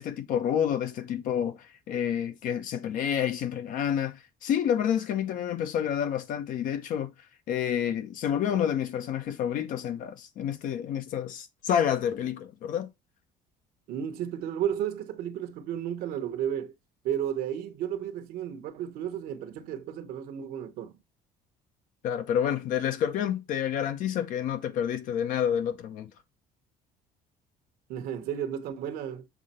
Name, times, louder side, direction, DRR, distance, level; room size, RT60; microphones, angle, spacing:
voice 1, 0.0-7.1 7.5-12.9 22.0-26.1, left 9 dB, 55° left, 0.9 m, -29 dB
voice 2, 13.9-16.7 17.0-20.9 27.9-29.3, right 10 dB, 65° right, 1.0 m, -33 dB
7.2 x 3.8 x 4.2 m
cardioid pair, 160°, 16 cm